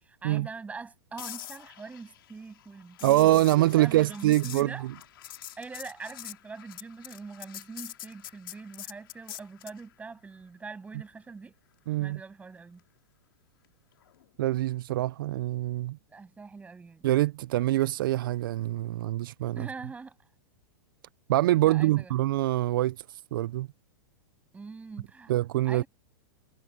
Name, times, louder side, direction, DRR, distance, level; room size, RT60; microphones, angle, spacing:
voice 1, 0.0-4.9 5.6-11.6 12.0-12.8 16.1-17.0 19.5-20.1 21.6-22.1 24.5-25.3 25.6-25.9, right 4 dB, 10° right, 7.8 m, -43 dB
sound 1, 1.2-9.8 14.0-14.2, left 12 dB, 75° left, 4.0 m, -45 dB
voice 2, 3.0-4.9 11.9-12.2 14.4-16.0 17.0-19.7 21.3-23.7 25.3-25.8, right 15 dB, 70° right, 0.5 m, -25 dB
hypercardioid pair, 130°, 12 cm